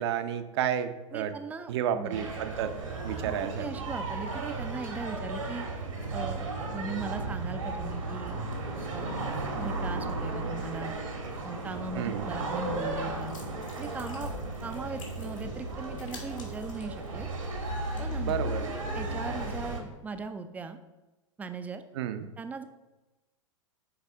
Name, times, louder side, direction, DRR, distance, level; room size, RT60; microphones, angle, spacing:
voice 1, 0.0-1.3 1.7-2.7 3.0-3.7 12.0-12.3 18.2-18.7 22.0-22.3, right 9 dB, 55° right, 10 dB, 0.6 m, -31 dB
voice 2, 1.1-2.2 3.2-5.7 6.1-6.5 6.7-8.4 8.9-9.2 9.6-10.9 11.4-13.4 13.8-14.3 14.6-17.3 18.0-20.8 21.4-21.8 22.4-22.6, right 4 dB, 10° right, 9 dB, 0.4 m, -39 dB
sound 1, 2.1-19.8, right 2 dB, 80° right, 1.5 m, -35 dB
sound 2, 13.0-19.7, left 2 dB, 75° left, 1.9 m, -47 dB
9.5 x 4.1 x 3.5 m, 1.1 s
figure-of-eight pair, 100°, 17 cm